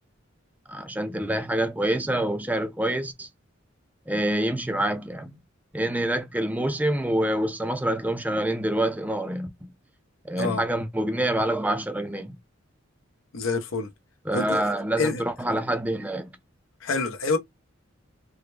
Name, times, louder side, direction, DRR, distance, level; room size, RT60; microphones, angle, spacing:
voice 1, 0.7-3.3 4.1-5.4 5.7-9.7 10.2-12.4 14.3-16.3, right 1 dB, 10° right, 0.5 m, -26 dB
voice 2, 13.3-13.9 14.3-14.6 15.0-15.2 16.8-17.4, left 3 dB, 90° left, 0.8 m, -26 dB
3.5 x 2.1 x 3.2 m
head